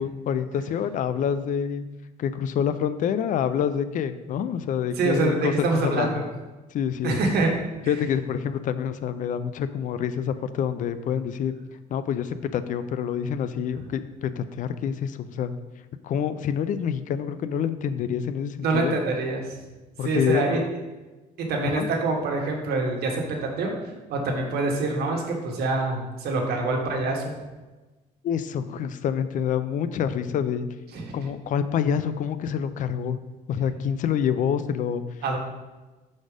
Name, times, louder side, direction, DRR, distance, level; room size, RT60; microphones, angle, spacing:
voice 1, 0.0-1.9 2.2-5.5 5.8-6.1 6.7-7.2 7.9-11.5 11.9-15.5 16.0-19.0 20.0-20.7 21.6-21.9 28.2-30.7 31.1-33.2 33.5-35.0, left 8 dB, 50° left, 12 dB, 0.4 m, -27 dB
voice 2, 5.0-6.2 7.0-7.5 7.8-7.9 18.6-19.5 20.0-20.6 21.4-27.3 30.9-31.1 35.2-35.4, right 3 dB, 70° right, 0 dB, 1.4 m, -25 dB
6.1 x 4.2 x 5.0 m, 1.2 s
cardioid pair, 110°, 17 cm